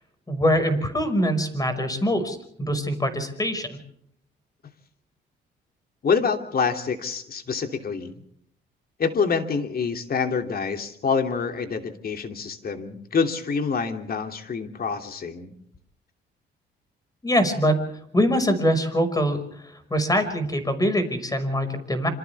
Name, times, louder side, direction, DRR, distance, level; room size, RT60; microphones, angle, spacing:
voice 1, 0.3-3.7 17.2-17.9 18.1-19.4 19.9-22.1, equal, 20° left, 9 dB, 5.8 m, -23 dB
voice 2, 6.0-8.1 9.0-15.5, left 5 dB, 50° left, 5 dB, 3.0 m, -26 dB
27.0 x 27.0 x 3.6 m, 0.73 s
cardioid pair, 90°, 20 cm